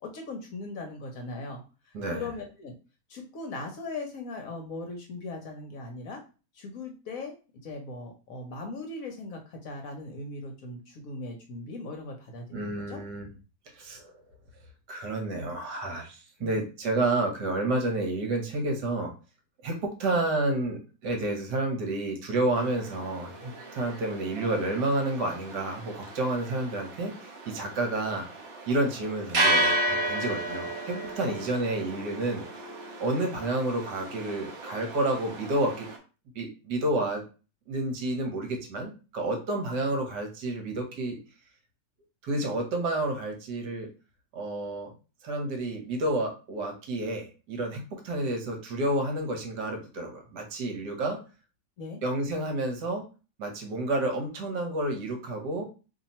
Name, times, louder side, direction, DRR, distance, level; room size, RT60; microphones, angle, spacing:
voice 1, 0.0-2.7 3.1-6.2 6.5-7.3 7.6-13.0 16.4-16.6 20.0-20.2 31.3-31.4 51.8-52.0, left 3 dB, 60° left, 3 dB, 1.0 m, -39 dB
voice 2, 1.9-2.3 12.5-13.3 13.7-14.2 14.9-19.1 19.6-28.3 28.7-32.7 33.0-35.9 36.3-37.2 37.7-41.2 42.2-43.9 44.3-44.9 45.2-51.2 52.0-53.0 53.4-55.7, right 2 dB, 75° right, 2 dB, 1.5 m, -30 dB
sound 1, 22.5-36.0, right 1 dB, 50° right, 0.8 m, -33 dB
2.9 x 2.8 x 4.1 m, 0.33 s
omnidirectional pair, 1.9 m